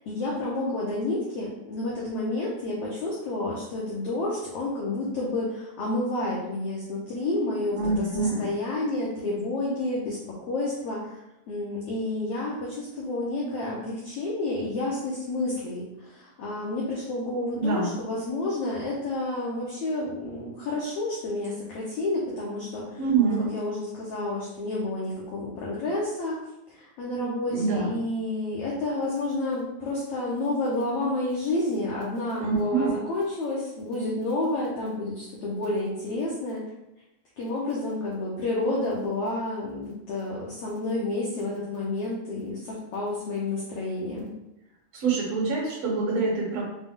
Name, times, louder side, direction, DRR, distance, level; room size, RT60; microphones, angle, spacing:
voice 1, 0.1-11.2 11.5-26.4 26.7-36.6 37.4-44.3, left 2 dB, 80° left, -5 dB, 1.3 m, -30 dB
voice 2, 7.7-8.5 17.5-17.9 23.0-23.5 27.5-27.9 32.4-32.9 44.9-46.6, right 4 dB, 60° right, -4 dB, 2.0 m, -25 dB
5.5 x 2.1 x 3.6 m, 0.91 s
omnidirectional pair, 3.6 m